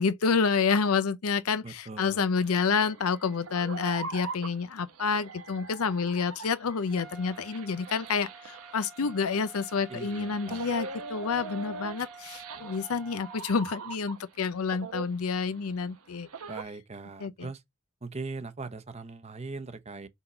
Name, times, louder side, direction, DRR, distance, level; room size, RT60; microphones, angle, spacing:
voice 1, 0.0-16.3 17.2-17.5, left 5 dB, 85° left, 0.6 m, -29 dB
voice 2, 1.6-2.3 9.9-10.6 16.5-17.6 18.0-20.1, right 3 dB, 30° right, 0.8 m, -40 dB
sound 1, 2.4-14.4 14.7-16.6, right 4 dB, 90° right, 1.0 m, -42 dB
Trumpet, 6.9-13.4, right 4 dB, ahead, 1.0 m, -50 dB
5.4 x 3.7 x 5.9 m
head